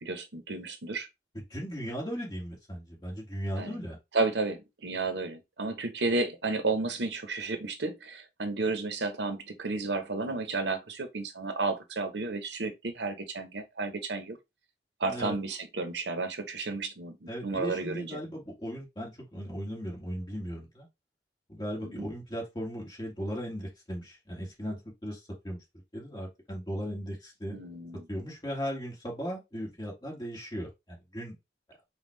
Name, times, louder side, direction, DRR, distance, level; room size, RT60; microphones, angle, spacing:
voice 1, 0.0-1.1 3.6-3.8 4.1-14.4 15.0-18.2 21.8-22.1 27.5-28.1, right 3 dB, 85° right, 0.9 m, -32 dB
voice 2, 1.3-4.0 15.0-15.4 17.3-20.9 21.5-25.6 25.9-27.6 28.1-31.3, equal, 25° left, 1.8 m, -37 dB
5.3 x 2.3 x 3.2 m
head